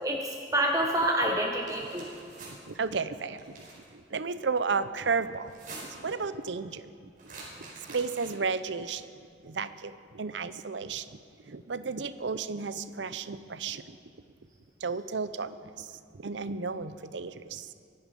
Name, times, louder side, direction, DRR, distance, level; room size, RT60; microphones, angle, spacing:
voice 1, 0.0-2.1, right 1 dB, 20° right, 1 dB, 1.1 m, -27 dB
sound 1, 1.5-2.5 3.3-3.9 5.4-6.1 7.2-8.5, right 3 dB, 50° right, 5.0 m, -46 dB
voice 2, 2.5-5.5 6.0-7.1 7.9-9.1 9.4-11.2 11.4-14.0 14.8-17.7, right 5 dB, 80° right, 13 dB, 0.7 m, -33 dB
23.5 x 11.0 x 5.3 m, 2.3 s
head